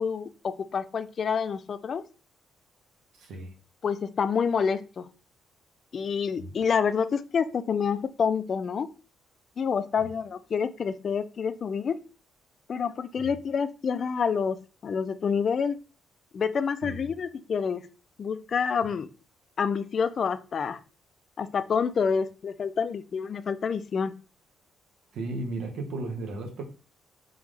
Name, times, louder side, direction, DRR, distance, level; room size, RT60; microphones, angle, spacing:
voice 1, 0.0-2.0 3.8-5.1 5.9-8.9 9.6-12.0 12.7-15.8 16.3-17.9 18.2-19.1 19.6-20.8 21.4-24.1, left 6 dB, 50° left, 12 dB, 0.3 m, -28 dB
voice 2, 3.2-3.5 6.4-6.5 10.0-10.1 13.2-13.3 16.8-17.0 25.1-26.6, right 2 dB, 80° right, 3 dB, 1.0 m, -35 dB
3.8 x 3.5 x 3.2 m, 0.36 s
cardioid pair, 90°, 0 cm